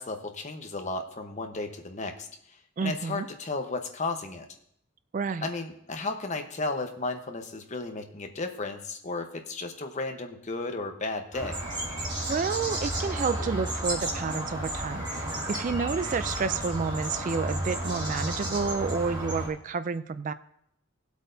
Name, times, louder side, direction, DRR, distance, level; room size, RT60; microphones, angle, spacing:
voice 1, 0.0-2.3 2.8-4.5 5.4-11.6, left 3 dB, 35° left, 5 dB, 1.0 m, -34 dB
voice 2, 2.8-3.3 5.1-5.5 12.3-20.3, right 5 dB, 40° right, 13 dB, 0.3 m, -30 dB
sound 1, 11.3-19.5, right 1 dB, 20° right, 2.5 m, -32 dB
19.0 x 8.1 x 2.7 m, 0.71 s
head